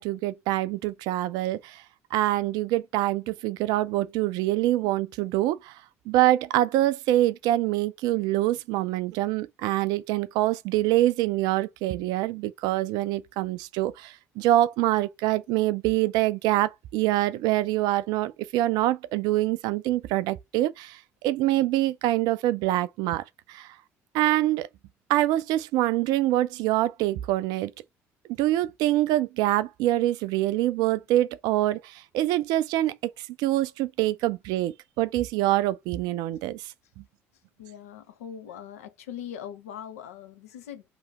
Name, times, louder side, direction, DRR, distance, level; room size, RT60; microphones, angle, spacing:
voice 1, 0.0-1.8 2.1-5.7 6.1-21.0 21.2-23.7 24.1-24.7 25.1-27.7 28.4-32.9 33.4-36.6 37.0-37.1, right 15 dB, 60° right, 0.4 m, -25 dB
voice 2, 37.6-40.8, left 9 dB, 75° left, 0.6 m, -41 dB
3.0 x 2.7 x 4.2 m
figure-of-eight pair, 55°, 8 cm